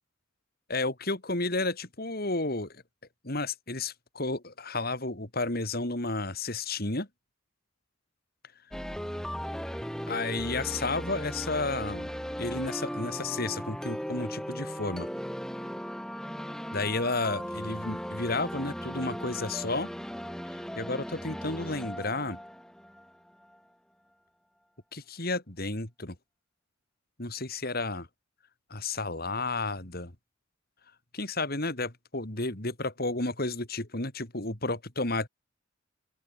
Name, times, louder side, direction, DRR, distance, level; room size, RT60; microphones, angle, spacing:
voice 1, 0.7-2.8 3.2-7.1 10.1-12.1 12.4-15.1 16.7-19.9 20.8-22.4 24.9-26.1 27.2-28.1 28.7-30.1 31.1-35.3, left 2 dB, 45° left, 3.4 m, -32 dB
sound 1, 8.7-23.6, equal, 5° left, 6.5 m, -37 dB
open air
head